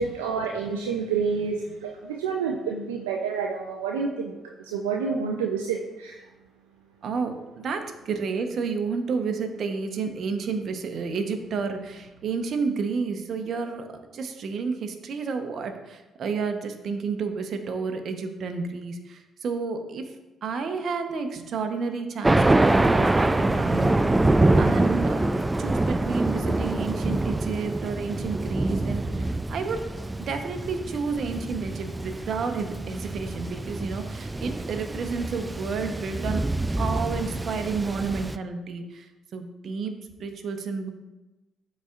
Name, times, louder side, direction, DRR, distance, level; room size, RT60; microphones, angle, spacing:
voice 1, 0.0-6.2, right 5 dB, 90° right, 1 dB, 0.4 m, -29 dB
voice 2, 7.0-13.9 14.1-20.0 20.4-23.9 24.6-25.2 25.6-29.8 30.3-36.5 36.8-40.9, right 5 dB, 60° right, 6 dB, 0.9 m, -31 dB
Thunder, 22.2-38.4, right 2 dB, 20° right, 0.4 m, -25 dB
12.5 x 4.2 x 2.5 m, 1.1 s
hypercardioid pair, 45°, 0 cm